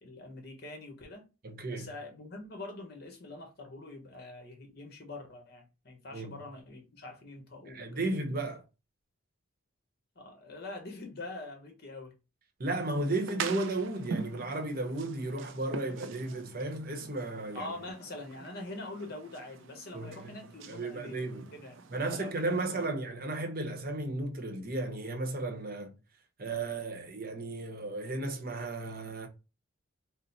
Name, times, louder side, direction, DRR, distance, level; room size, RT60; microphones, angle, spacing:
voice 1, 0.0-1.3 1.7-8.0 10.2-12.1 17.5-21.8 22.1-22.3 22.7-22.9, left 2 dB, 50° left, 1.1 m, -44 dB
voice 2, 1.4-1.9 6.1-6.4 7.7-8.6 12.6-17.7 19.9-20.4 20.7-21.5 21.9-26.0 26.4-29.3, right 2 dB, 45° right, 0.8 m, -34 dB
sound 1, 12.8-22.9, right 5 dB, 60° right, 0.4 m, -44 dB
3.9 x 2.1 x 4.0 m
head